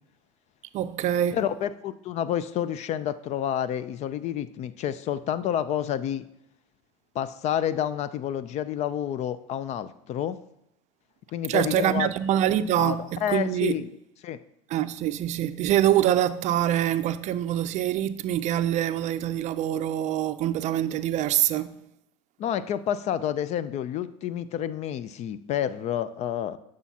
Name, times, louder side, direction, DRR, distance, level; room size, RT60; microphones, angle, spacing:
voice 1, 0.7-1.4 11.5-13.8 14.7-21.8, right 12 dB, 45° right, 0.4 m, -25 dB
voice 2, 1.3-6.2 7.1-10.4 11.3-12.1 12.8-14.0 14.2-14.4 22.4-26.6, left 10 dB, 45° left, 0.4 m, -29 dB
9.1 x 6.2 x 2.8 m
supercardioid pair, 105°, 16 cm